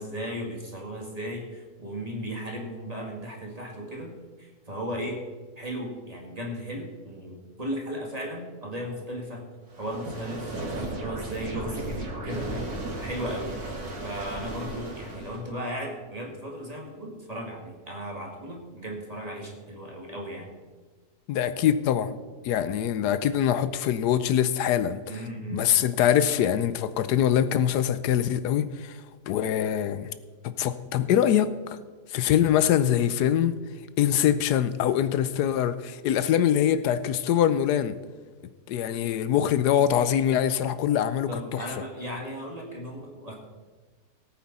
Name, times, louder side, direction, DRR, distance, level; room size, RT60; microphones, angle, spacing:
voice 1, 0.0-5.2 5.6-9.4 9.8-12.7 13.0-13.5 14.0-20.5 25.1-25.9 41.3-43.3, equal, 25° right, 2.2 m, -36 dB
sound 1, 9.7-15.5, right 2 dB, 70° right, 2.7 m, -35 dB
voice 2, 21.3-22.2 22.4-25.0 25.5-29.0 29.3-30.1 30.4-31.8 32.1-33.6 34.0-37.9 38.7-41.6, left 10 dB, 85° left, 1.2 m, -24 dB
18.5 x 8.6 x 4.2 m
omnidirectional pair, 1.7 m